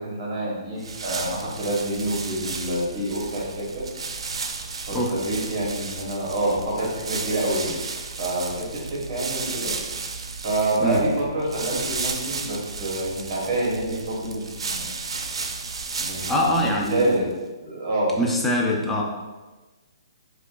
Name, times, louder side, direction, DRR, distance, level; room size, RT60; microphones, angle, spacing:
voice 1, 0.0-3.8 4.8-7.8 8.2-9.7 10.4-14.8 16.0-17.2 17.6-18.1, right 1 dB, 35° right, -4 dB, 1.2 m, -27 dB
sound 1, 0.8-17.3, right 4 dB, 85° right, 0.4 m, -33 dB
voice 2, 16.3-17.1 18.2-19.0, equal, 5° left, -2 dB, 0.4 m, -23 dB
4.9 x 2.3 x 2.4 m, 1.2 s
hypercardioid pair, 165°, 3 cm